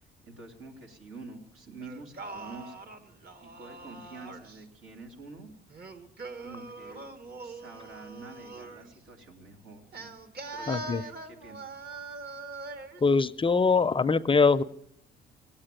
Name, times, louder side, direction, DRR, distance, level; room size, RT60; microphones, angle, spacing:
voice 1, 0.2-2.9 3.4-5.5 6.4-7.1 7.4-10.1 10.5-11.7, right 3 dB, 85° right, 2 dB, 2.8 m, -47 dB
Singing, 1.8-4.6 5.7-8.9 9.9-13.0, right 3 dB, 55° right, 1.7 m, -42 dB
voice 2, 10.7-11.0 13.0-14.6, left 4 dB, 25° left, 13 dB, 0.5 m, -23 dB
18.0 x 8.8 x 9.0 m, 0.76 s
cardioid pair, 90°, 20 cm